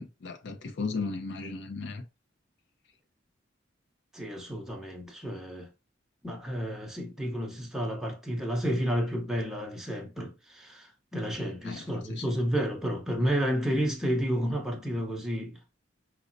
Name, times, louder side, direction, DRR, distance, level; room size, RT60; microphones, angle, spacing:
voice 1, 0.0-2.0 11.6-11.8 12.1-12.2, left 4 dB, 65° left, 0.5 m, -35 dB
voice 2, 4.1-5.7 6.2-15.6, equal, ahead, 0.8 m, -31 dB
5.0 x 2.0 x 2.5 m
head